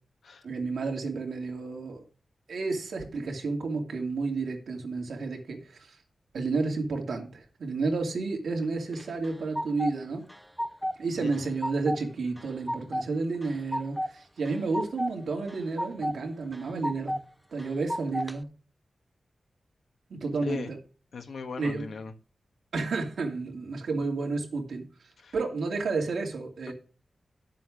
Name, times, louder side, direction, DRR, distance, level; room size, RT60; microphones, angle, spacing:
voice 1, 0.4-2.0 2.5-6.0 6.3-10.3 11.0-17.2 17.5-18.5 20.1-20.8 21.6-21.9 22.7-24.9 25.3-26.7, right 3 dB, 90° right, 2.7 m, -31 dB
sound 1, 8.9-9.9 10.3-11.0 11.3-12.0 12.4-13.1 13.4-14.1 14.5-15.1 15.5-16.2 16.5-17.2 17.6-18.4, equal, ahead, 0.6 m, -32 dB
voice 2, 11.2-11.5 20.5-20.7 21.1-22.1 25.2-25.3, left 4 dB, 85° left, 1.5 m, -37 dB
11.0 x 7.5 x 3.7 m
cardioid pair, 70°, 0 cm